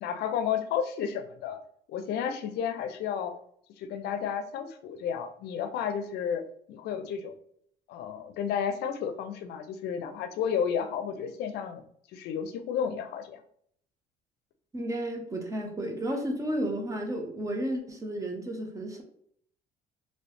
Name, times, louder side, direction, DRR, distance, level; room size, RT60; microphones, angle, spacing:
voice 1, 0.0-1.6 1.9-3.3 3.8-7.3 7.9-11.8 12.1-13.4, left 8 dB, 75° left, 9 dB, 0.5 m, -32 dB
voice 2, 14.7-19.0, right 1 dB, 20° right, 3 dB, 0.7 m, -32 dB
3.0 x 2.8 x 3.1 m, 0.66 s
cardioid pair, 110°, 17 cm